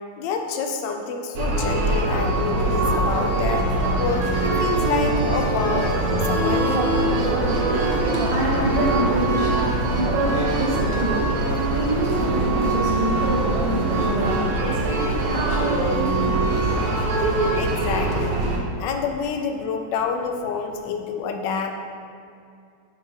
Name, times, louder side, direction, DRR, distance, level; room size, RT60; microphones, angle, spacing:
voice 1, 0.2-3.6 4.0-5.9 6.2-6.9 17.5-18.4 18.8-21.7, left 5 dB, 75° left, 4 dB, 1.0 m, -28 dB
sound 1, 1.4-18.6, right 2 dB, 85° right, 1.8 m, -22 dB
voice 2, 8.1-17.8 18.5-18.9, right 1 dB, 55° right, -3 dB, 1.4 m, -28 dB
9.6 x 3.3 x 3.6 m, 2.4 s
omnidirectional pair, 2.4 m